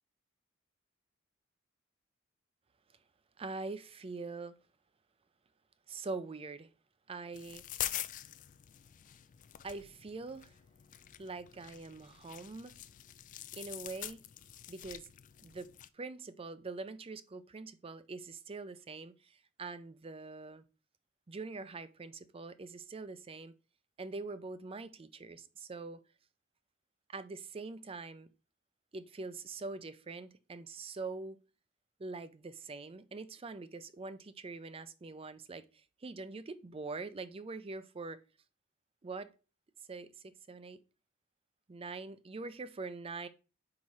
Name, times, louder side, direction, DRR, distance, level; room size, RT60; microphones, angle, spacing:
voice 1, 3.4-4.5 5.9-6.7 7.1-7.6 9.6-10.5 11.2-12.8 13.5-14.2 14.7-15.1 15.4-15.7 15.9-20.6 21.3-23.5 24.0-26.0 27.1-28.3 28.9-31.4 32.0-38.2 39.0-39.3 39.9-40.8 41.7-43.3, right 3 dB, 30° right, 0.5 m, -44 dB
sound 1, 7.3-15.9, left 13 dB, 40° left, 0.3 m, -45 dB
4.9 x 4.7 x 4.1 m
head